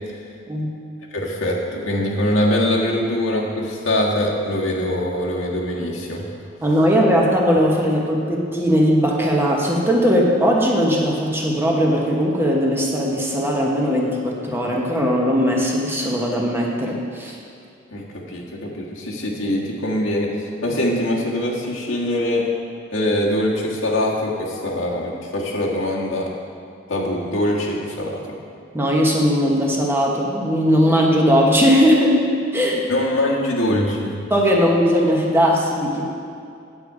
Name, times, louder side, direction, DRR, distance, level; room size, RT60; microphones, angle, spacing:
voice 1, 1.1-6.2 17.9-22.5 22.9-26.3 26.9-28.2 32.9-34.2, left 1 dB, 85° left, -3 dB, 1.6 m, -23 dB
voice 2, 6.6-17.4 28.7-32.3 32.5-32.8 34.3-36.0, equal, 10° right, -2 dB, 1.1 m, -18 dB
9.0 x 8.0 x 4.8 m, 2.4 s
head